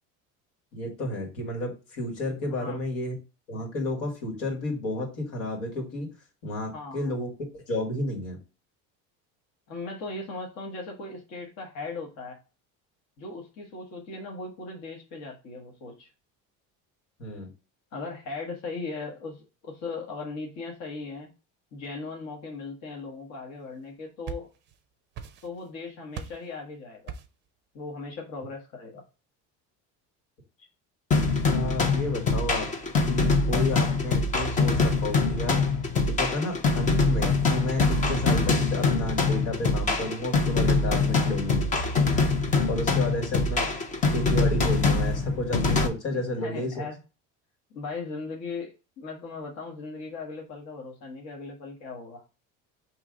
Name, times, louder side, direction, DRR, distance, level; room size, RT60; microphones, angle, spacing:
voice 1, 0.7-3.1 3.5-6.1 6.4-8.4 17.2-17.5 31.4-32.7 33.0-35.7 36.0-41.7 42.7-43.7 44.1-46.8, left 1 dB, 90° left, 1 dB, 2.1 m, -32 dB
voice 2, 2.4-2.8 6.7-7.1 9.7-12.4 13.2-16.1 17.9-21.3 21.7-24.5 25.4-27.1 27.7-29.0 43.5-43.6 46.4-46.9 47.7-52.2, left 3 dB, 55° left, 0 dB, 1.2 m, -38 dB
sound 1, 23.9-24.8 25.1-25.7 26.1-26.5 27.1-27.5, right 7 dB, 35° right, 0.5 m, -40 dB
sound 2, 31.1-45.9, left 3 dB, 25° left, 0.6 m, -24 dB
4.7 x 3.1 x 3.6 m, 0.31 s
cardioid pair, 170°, 32 cm